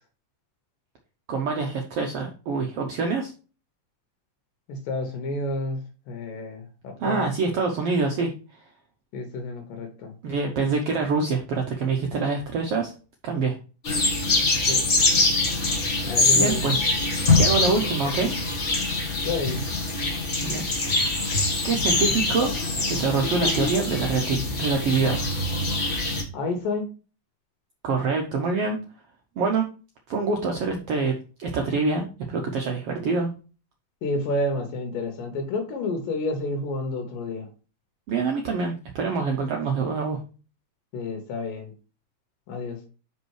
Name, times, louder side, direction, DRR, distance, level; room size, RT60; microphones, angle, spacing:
voice 1, 1.3-3.3 7.0-8.6 10.2-12.9 13.2-13.6 16.3-16.8 17.4-18.3 20.4-20.7 21.2-21.3 21.6-22.5 22.9-25.2 27.8-28.8 29.4-29.7 30.1-33.3 38.1-40.2, right 4 dB, 80° right, 2 dB, 1.3 m, -25 dB
voice 2, 4.7-5.8 6.1-7.3 9.1-10.2 14.7-14.8 16.0-16.7 19.2-19.6 26.3-26.9 34.0-37.5 40.9-41.7 42.5-42.8, left 2 dB, 80° left, 5 dB, 2.7 m, -30 dB
sound 1, 13.8-26.2, left 2 dB, 35° left, 1.1 m, -24 dB
5.4 x 5.4 x 4.7 m, 0.35 s
omnidirectional pair, 3.8 m